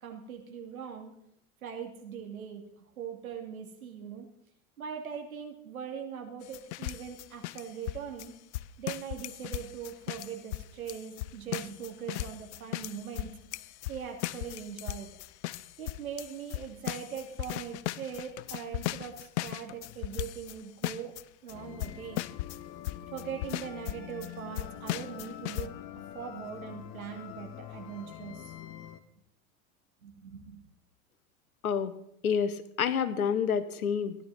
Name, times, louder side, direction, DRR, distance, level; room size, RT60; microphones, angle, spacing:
voice 1, 0.0-1.1 1.6-4.3 4.8-8.3 8.8-13.4 13.9-15.1 15.8-21.1 21.4-22.3 23.1-25.8 26.1-28.5 30.0-30.6, right 7 dB, 75° right, 3 dB, 2.6 m, -41 dB
sound 1, 6.4-20.6 20.8-21.2 21.5-21.6 21.8-22.6 22.8-24.3 24.6-25.7, left 16 dB, 55° left, 0.6 m, -37 dB
sound 2, 21.5-29.0, left 12 dB, 35° left, 1.1 m, -45 dB
voice 2, 32.2-34.1, left 7 dB, 75° left, 13 dB, 1.2 m, -28 dB
16.0 x 11.0 x 4.1 m, 0.74 s
figure-of-eight pair, 90°, 43 cm